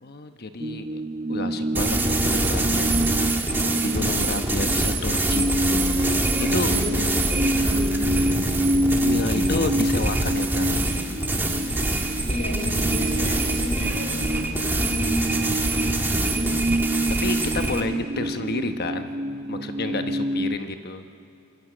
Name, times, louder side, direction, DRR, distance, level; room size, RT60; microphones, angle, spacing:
voice 1, 0.0-1.0 1.3-3.1 3.6-5.4 6.4-6.8 9.0-11.3 17.2-19.2 19.5-21.1, left 2 dB, 50° left, 7 dB, 1.0 m, -30 dB
sound 1, 0.6-20.6, right 1 dB, 30° right, 0.6 m, -27 dB
sound 2, 1.7-17.8, right 2 dB, 10° right, 1.4 m, -25 dB
voice 2, 3.7-4.1 6.6-8.3 12.3-16.5, left 1 dB, 70° left, 0 dB, 5.6 m, -34 dB
26.5 x 22.0 x 6.3 m, 2.6 s
head